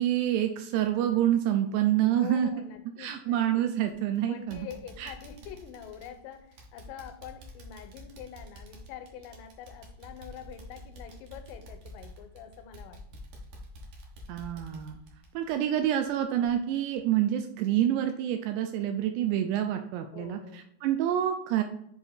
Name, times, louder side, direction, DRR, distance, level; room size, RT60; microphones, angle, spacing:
voice 1, 0.0-2.5 3.0-4.7 5.0-5.1 14.3-15.0 15.3-21.6, right 11 dB, 85° right, 6 dB, 2.7 m, -27 dB
voice 2, 2.1-3.4 4.3-13.2 20.1-20.7, left 9 dB, 90° left, 8 dB, 2.8 m, -45 dB
sound 1, 3.9-4.2 4.5-16.1 16.4-16.5 17.0-17.1, left 1 dB, 60° right, 2.3 m, -48 dB
7.6 x 3.5 x 4.5 m, 0.72 s
omnidirectional pair, 4.9 m